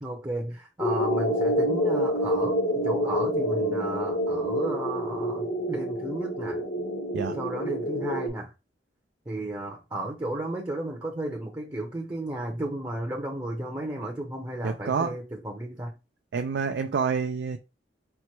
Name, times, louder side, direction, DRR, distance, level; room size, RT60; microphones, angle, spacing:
voice 1, 0.0-6.6 7.4-8.5 9.3-16.0, right 1 dB, 20° right, 0.7 m, -33 dB
sound 1, 0.8-8.3, equal, 80° left, 1.9 m, -27 dB
voice 2, 14.6-15.1 16.3-17.6, right 5 dB, 70° right, 0.3 m, -28 dB
4.4 x 2.1 x 4.4 m
head